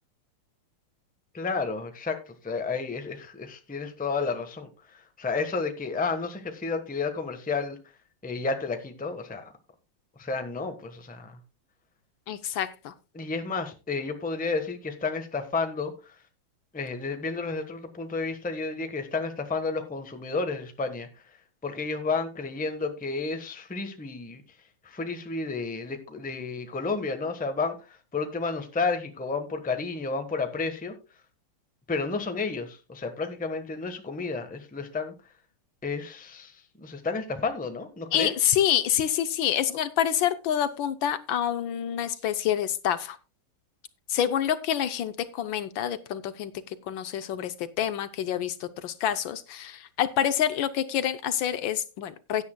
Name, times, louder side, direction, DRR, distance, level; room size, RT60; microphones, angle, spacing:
voice 1, 1.3-7.8 8.2-9.5 10.2-11.4 13.1-16.2 16.7-21.1 21.6-24.4 24.8-30.9 31.9-35.1 35.8-38.3, left 4 dB, 5° left, 6 dB, 0.8 m, -31 dB
voice 2, 12.3-12.9 38.1-43.2 44.1-52.4, left 10 dB, 70° left, 11 dB, 1.4 m, -27 dB
16.5 x 9.7 x 2.2 m, 0.30 s
omnidirectional pair, 2.3 m